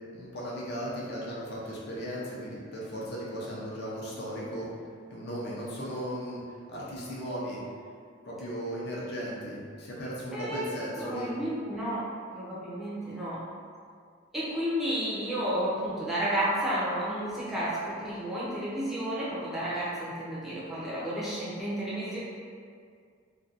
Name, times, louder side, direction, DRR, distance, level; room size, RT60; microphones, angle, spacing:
voice 1, 0.1-4.7 5.1-6.4 6.7-7.6 8.3-11.3, equal, 55° left, -6 dB, 0.5 m, -36 dB
voice 2, 10.3-10.7 11.0-13.4 14.3-22.2, right 1 dB, ahead, -10 dB, 0.5 m, -32 dB
2.5 x 2.2 x 2.4 m, 2.1 s
head